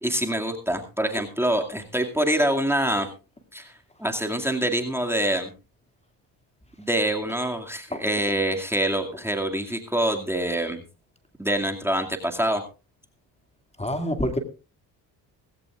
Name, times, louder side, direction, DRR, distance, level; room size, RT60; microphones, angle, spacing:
voice 1, 0.0-3.1 3.5-5.5 6.8-10.8 11.4-12.6, right 1 dB, 5° right, 3 dB, 2.2 m, -25 dB
voice 2, 13.8-14.4, left 1 dB, 15° left, 6 dB, 2.3 m, -26 dB
18.0 x 16.5 x 2.5 m, 0.31 s
supercardioid pair, 65°, 43 cm